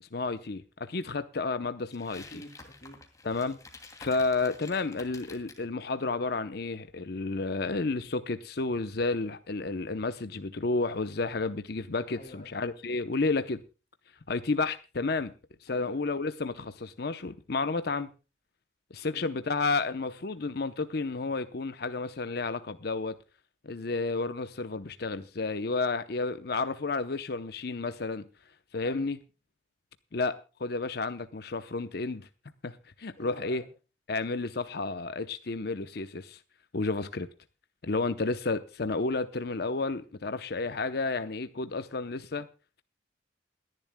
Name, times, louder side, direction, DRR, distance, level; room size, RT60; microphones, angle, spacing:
voice 1, 0.0-2.4 3.2-3.6 4.0-13.6 14.3-15.3 15.6-18.1 18.9-23.1 23.6-28.3 28.7-29.2 30.1-32.3 32.6-33.6 34.1-36.4 36.7-37.3 37.8-42.5, left 3 dB, 55° left, 0.7 m, -31 dB
sound 1, 1.9-5.6, left 3 dB, 20° left, 2.5 m, -49 dB
voice 2, 2.1-3.0 12.2-12.5 15.7-16.0 19.1-19.3 28.8-29.1 33.2-33.7, equal, 35° left, 2.9 m, -48 dB
28.0 x 11.0 x 2.2 m
head